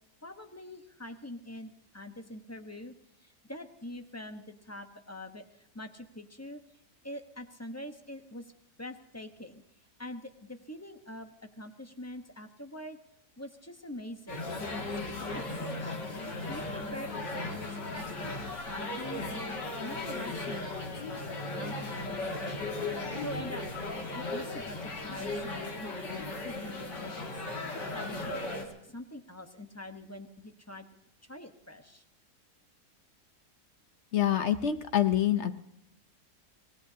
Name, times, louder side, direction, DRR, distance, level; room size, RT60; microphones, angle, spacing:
voice 1, 0.2-2.9 3.2-6.6 7.0-8.4 8.8-9.6 10.0-13.0 13.4-14.5 15.1-16.0 16.5-22.6 23.2-23.6 24.1-27.4 27.9-30.9 31.3-32.0, left 1 dB, 10° left, 6 dB, 0.8 m, -44 dB
sound 1, 14.3-28.7, left 2 dB, 85° left, 3.0 m, -36 dB
voice 2, 34.1-35.5, left 11 dB, 55° left, 10 dB, 0.8 m, -26 dB
25.0 x 18.5 x 2.8 m, 0.81 s
omnidirectional pair, 1.8 m